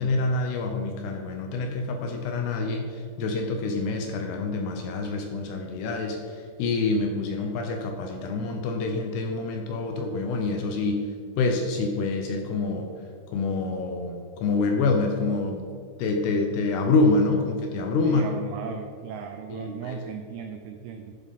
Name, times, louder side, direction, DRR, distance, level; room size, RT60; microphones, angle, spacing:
voice 1, 0.0-11.1 11.4-12.9 13.3-15.7 16.0-18.2 19.5-20.0, left 3 dB, 75° left, 3 dB, 2.5 m, -26 dB
voice 2, 18.0-21.2, right 6 dB, 90° right, 5 dB, 2.2 m, -36 dB
11.5 x 7.0 x 4.1 m, 2.1 s
omnidirectional pair, 5.3 m